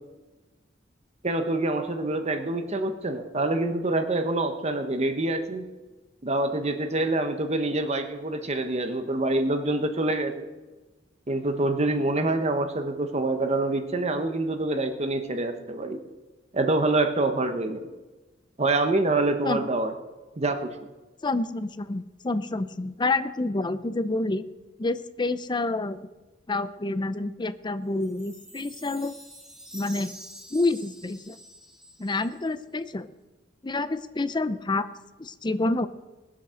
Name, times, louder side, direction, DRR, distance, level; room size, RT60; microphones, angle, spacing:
voice 1, 1.2-5.7 6.2-10.5 11.3-16.0 16.5-17.9 18.6-19.9 20.4-20.8, right 2 dB, 35° right, 7 dB, 1.1 m, -26 dB
voice 2, 21.2-24.5 24.8-26.0 26.5-29.1 29.7-30.1 30.5-31.4 32.0-33.1 33.6-34.9 35.2-35.9, left 2 dB, 25° left, 13 dB, 0.6 m, -28 dB
Chime, 28.0-32.5, right 1 dB, 5° right, 1.8 m, -46 dB
19.0 x 8.2 x 6.4 m, 1.2 s
head